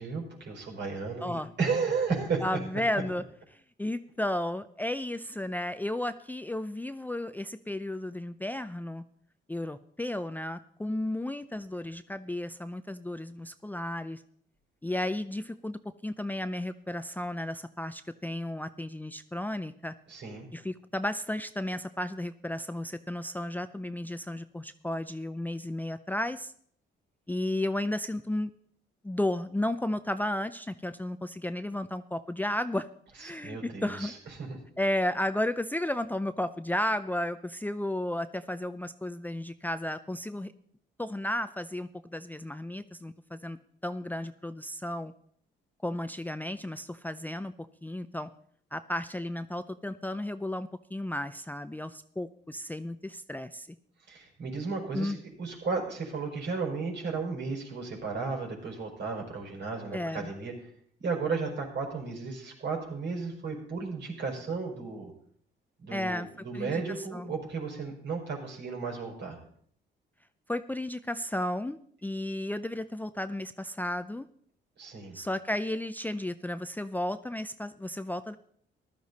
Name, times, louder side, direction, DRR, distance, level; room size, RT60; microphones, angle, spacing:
voice 1, 0.0-2.4 20.1-20.5 33.2-34.6 54.1-60.5 61.0-65.1 65.8-69.4 74.8-75.2, right 4 dB, 60° right, 0 dB, 5.1 m, -34 dB
voice 2, 1.2-1.5 2.4-3.2 3.5-9.0 9.5-14.2 14.8-19.9 20.5-26.5 27.3-28.5 29.0-32.9 33.2-34.1 34.8-40.5 41.0-43.6 43.8-45.1 45.8-47.5 47.8-48.3 48.7-53.8 54.9-55.2 59.9-60.3 65.9-66.3 66.5-66.7 67.1-67.3 70.5-74.3 75.1-78.4, left 1 dB, 10° left, 11 dB, 0.5 m, -33 dB
14.5 x 12.0 x 4.1 m, 0.62 s
cardioid pair, 90°, 20 cm